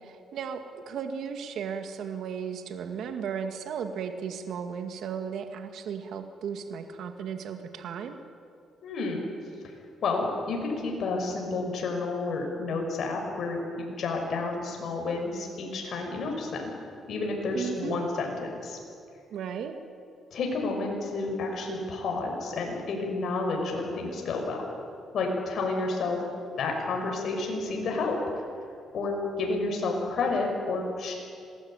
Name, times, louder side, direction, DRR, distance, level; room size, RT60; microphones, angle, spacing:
voice 1, 0.0-8.2 17.5-18.0 19.3-19.7, right 7 dB, 75° right, 6 dB, 2.0 m, -35 dB
voice 2, 8.8-9.2 9.6-9.7 10.0-16.7 17.1-18.8 20.3-24.7 25.1-26.2 26.6-28.2 28.9-31.1, left 3 dB, 65° left, 1 dB, 6.0 m, -30 dB
27.0 x 19.5 x 9.1 m, 2.4 s
cardioid pair, 90°, 0 cm